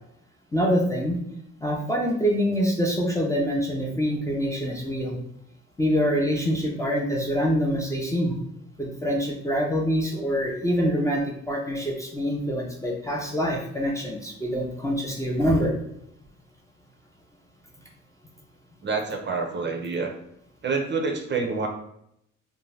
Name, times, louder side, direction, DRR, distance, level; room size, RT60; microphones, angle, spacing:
voice 1, 0.5-1.2 1.6-5.2 5.8-8.4 8.8-15.7, equal, 10° left, -1 dB, 0.5 m, -25 dB
voice 2, 18.8-20.1 20.6-21.7, right 4 dB, 35° right, 2 dB, 0.5 m, -27 dB
2.5 x 2.2 x 3.2 m, 0.75 s
cardioid pair, 90°, 30 cm